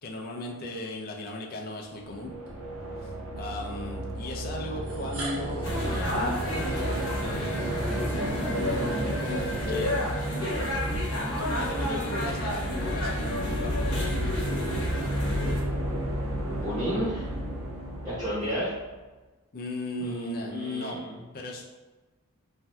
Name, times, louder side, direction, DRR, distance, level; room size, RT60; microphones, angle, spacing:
voice 1, 0.0-2.3 3.0-7.6 9.2-9.9 11.4-14.1 18.4-18.5 19.5-21.0 21.3-21.6, left 1 dB, 45° left, -1 dB, 0.4 m, -37 dB
sound 1, 1.9-18.9, right 1 dB, 65° right, 0.5 m, -33 dB
sound 2, 2.5-2.6 3.7-3.8 4.8-10.7, right 2 dB, 90° right, 0.8 m, -45 dB
sound 3, 5.6-15.6, left 1 dB, 65° left, 0.9 m, -31 dB
voice 2, 16.5-17.3 18.0-18.7 20.0-21.2, equal, 20° right, -9 dB, 0.8 m, -32 dB
2.6 x 2.2 x 3.2 m, 1.2 s
head